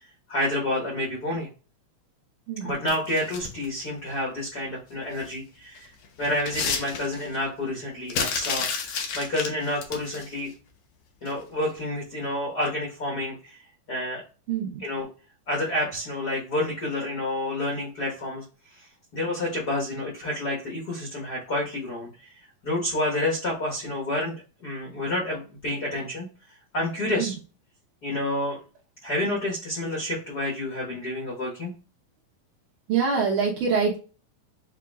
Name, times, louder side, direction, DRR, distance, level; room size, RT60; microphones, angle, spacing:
voice 1, 0.3-1.5 2.6-5.9 6.2-10.5 11.2-13.6 13.9-14.2 14.8-15.1 15.5-18.4 18.7-18.8 19.1-22.3 22.6-24.3 24.6-26.3 26.7-27.3 28.0-28.6 29.0-31.7, left 1 dB, 70° left, -3 dB, 0.9 m, -29 dB
sound 1, 2.9-3.7 5.2-5.4 5.8-7.4 8.1-10.3 11.3-11.4 11.8-11.9, left 5 dB, 90° left, 1.3 m, -31 dB
voice 2, 32.9-34.0, right 5 dB, 70° right, -3 dB, 2.2 m, -24 dB
7.6 x 2.7 x 2.4 m, 0.35 s
omnidirectional pair, 4.1 m